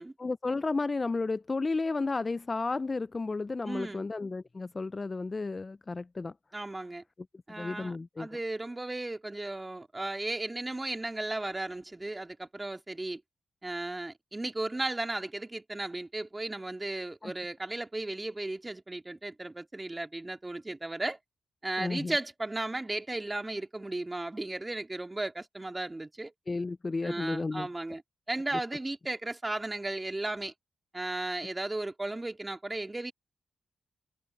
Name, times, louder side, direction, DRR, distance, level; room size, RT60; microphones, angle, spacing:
voice 1, 0.2-6.3 7.5-8.3 17.2-17.3 21.8-22.1 26.5-27.7, left 3 dB, 40° left, 0.5 m, -32 dB
voice 2, 3.6-4.1 6.5-7.0 7.5-13.2 13.6-21.2 21.6-26.3 27.0-28.0 28.3-30.5 30.9-33.1, right 2 dB, 25° right, 2.4 m, -35 dB
supercardioid pair, 45°, 0 cm